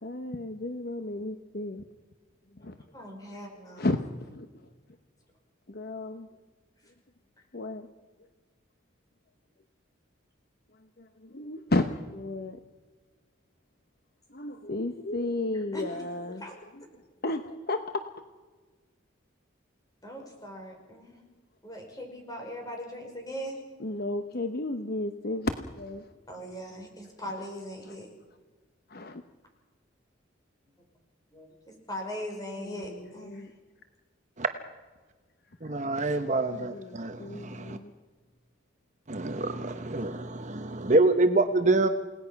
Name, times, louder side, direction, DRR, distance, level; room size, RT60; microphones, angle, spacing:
voice 1, 0.0-1.8 2.6-2.8 3.2-3.3 3.8-4.5 5.7-6.3 7.5-7.9 11.0-12.6 14.3-16.4 17.2-18.0 23.8-26.1 28.9-29.2 32.6-33.5 36.5-37.9, left 2 dB, 50° left, 8 dB, 0.9 m, -33 dB
voice 2, 2.9-3.9 15.5-16.0 16.4-16.5 20.0-21.2 21.6-23.6 26.3-28.1 31.3-33.4, equal, 20° left, 2 dB, 5.4 m, -40 dB
voice 3, 35.6-37.8 39.1-41.9, right 2 dB, 35° right, 8 dB, 1.0 m, -26 dB
29.0 x 18.5 x 5.9 m, 1.3 s
head